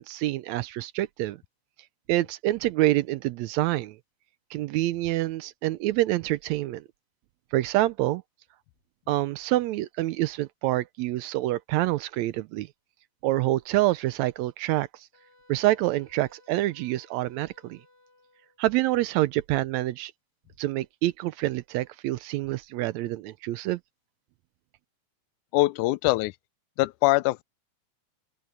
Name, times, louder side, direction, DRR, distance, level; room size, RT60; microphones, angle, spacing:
voice 1, 0.0-1.4 2.1-4.0 4.5-6.8 7.5-8.2 9.1-12.7 13.2-14.9 15.5-17.8 18.6-20.1 20.6-23.8, right 16 dB, 80° right, 1.7 m, -26 dB
Wind instrument woodwind instrument, 15.1-18.6, left 2 dB, 65° left, 7.7 m, -60 dB
voice 2, 25.5-26.3 26.8-27.4, left 19 dB, 90° left, 2.0 m, -23 dB
open air
omnidirectional pair, 3.4 m